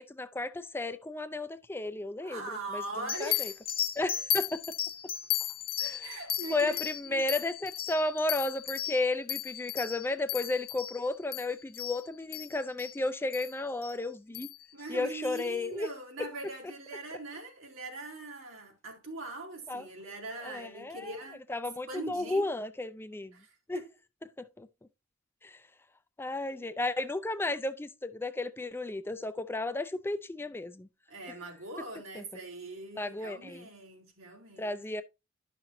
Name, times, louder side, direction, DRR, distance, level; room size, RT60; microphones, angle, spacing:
voice 1, 0.0-2.4 2.7-2.8 3.2-3.5 4.0-4.6 5.8-6.2 6.5-14.5 14.9-15.9 16.2-16.3 19.7-19.9 20.4-21.2 21.5-23.3 23.7-23.8 24.4-24.7 25.4-25.6 26.2-30.9 32.2-32.3 33.0-33.7 34.6-35.0, left 2 dB, 10° left, 0.3 m, -33 dB
voice 2, 2.2-3.5 6.0-6.8 7.1-7.2 14.7-21.4 21.9-22.5 23.3-23.9 31.1-34.8, right 2 dB, 80° right, 3.0 m, -41 dB
sound 1, 3.1-12.9 13.3-13.5 13.8-13.9 14.3-14.6 15.4-15.5, left 12 dB, 45° left, 0.7 m, -35 dB
11.5 x 5.8 x 2.6 m
head